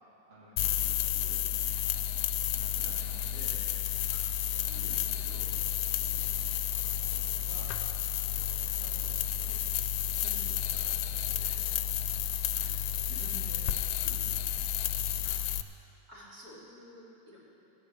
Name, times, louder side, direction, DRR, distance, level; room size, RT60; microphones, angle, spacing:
voice 1, 0.3-1.5 1.8-2.3 2.5-3.6 4.7-5.5 6.8-7.8 8.4-9.5 9.9-11.6 12.8-14.4, right 1 dB, 35° right, -7 dB, 2.2 m, -52 dB
sound 1, 0.6-15.6, left 10 dB, 70° left, 0.9 m, -31 dB
voice 2, 4.6-4.9 6.0-6.5 12.4-12.8 15.2-15.4 16.1-17.4, equal, 65° right, -6 dB, 3.5 m, -53 dB
17.5 x 7.9 x 6.5 m, 2.9 s
omnidirectional pair, 1.8 m